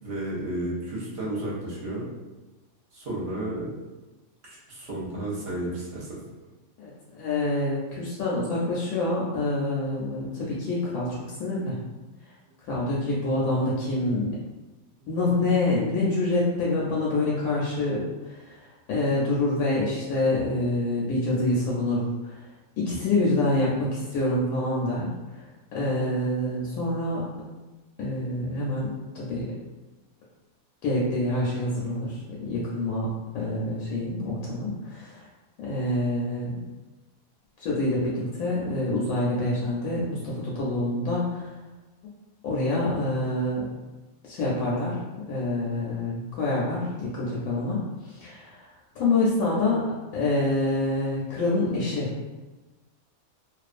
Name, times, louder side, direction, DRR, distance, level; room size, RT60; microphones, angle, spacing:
voice 1, 0.0-2.1 2.9-3.7 4.4-6.2 15.0-15.1, right 1 dB, 55° right, -6 dB, 0.7 m, -32 dB
voice 2, 6.8-11.7 12.6-14.3 15.1-18.6 18.9-22.4 22.8-25.1 25.3-25.5 25.7-27.2 28.0-28.9 29.1-29.5 30.8-33.1 33.3-35.3 35.6-36.6 37.6-41.5 42.4-43.7 44.2-45.0 45.3-48.7 48.9-49.8 50.1-52.1, left 2 dB, 80° left, -5 dB, 1.0 m, -26 dB
2.4 x 2.3 x 2.4 m, 1.2 s
omnidirectional pair, 1.5 m